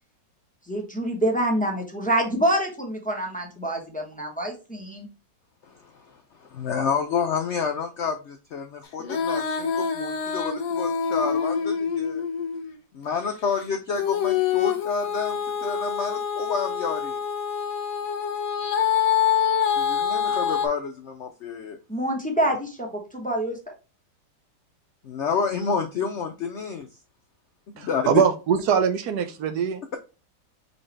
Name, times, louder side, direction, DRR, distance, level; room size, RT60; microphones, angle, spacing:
voice 1, 0.7-5.1 21.9-23.7, right 1 dB, 5° left, 1 dB, 0.6 m, -26 dB
voice 2, 6.4-12.2 12.9-17.2 19.8-21.8 25.0-26.9 27.8-28.1, left 6 dB, 85° left, 5 dB, 0.6 m, -29 dB
Female singing, 9.0-12.7 13.9-20.7, left 7 dB, 60° left, 1.1 m, -26 dB
voice 3, 27.8-29.8, right 7 dB, 70° right, 9 dB, 1.1 m, -22 dB
4.0 x 3.9 x 3.2 m, 0.32 s
omnidirectional pair, 1.9 m